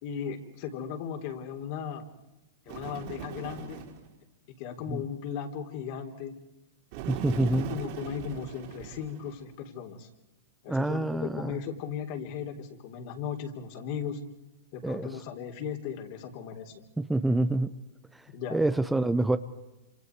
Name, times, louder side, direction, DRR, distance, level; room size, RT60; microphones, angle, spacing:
voice 1, 0.0-2.1 2.7-3.9 4.6-6.3 7.2-10.1 10.6-14.2 14.7-16.8 18.3-18.6, left 7 dB, 50° left, 4 dB, 3.7 m, -37 dB
Bird, 2.7-4.1 6.9-9.4, right 8 dB, 50° right, 5.0 m, -39 dB
voice 2, 7.1-7.7 10.7-11.6 14.8-15.1 17.1-17.7 18.5-19.4, right 2 dB, 5° right, 10 dB, 0.9 m, -26 dB
28.0 x 27.0 x 4.8 m, 0.99 s
hypercardioid pair, 110°, 0 cm